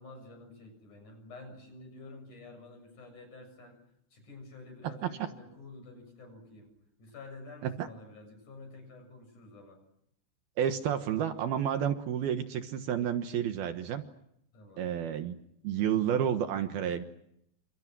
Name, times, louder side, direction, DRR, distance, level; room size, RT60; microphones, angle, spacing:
voice 1, 0.0-3.8 4.1-9.8 14.5-14.9, left 2 dB, 45° left, 7 dB, 8.5 m, -50 dB
voice 2, 10.6-14.0 14.8-15.4 15.6-17.0, right 9 dB, 70° right, 8 dB, 3.0 m, -30 dB
30.0 x 26.5 x 6.2 m, 0.74 s
omnidirectional pair, 4.9 m